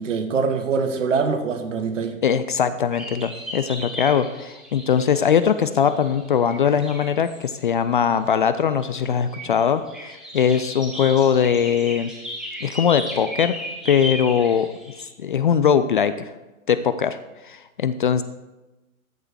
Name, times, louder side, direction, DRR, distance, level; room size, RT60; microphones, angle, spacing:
voice 1, 0.0-2.1, right 5 dB, 60° right, 6 dB, 1.6 m, -23 dB
voice 2, 2.2-12.1 12.6-13.5 13.9-14.7 15.2-16.3 16.7-17.2 17.4-18.2, left 7 dB, 40° left, 12 dB, 0.4 m, -21 dB
sound 1, 2.9-7.4 8.8-9.0 9.3-15.0, left 1 dB, ahead, 2.0 m, -35 dB
13.5 x 6.6 x 4.7 m, 1.1 s
figure-of-eight pair, 110°, 42 cm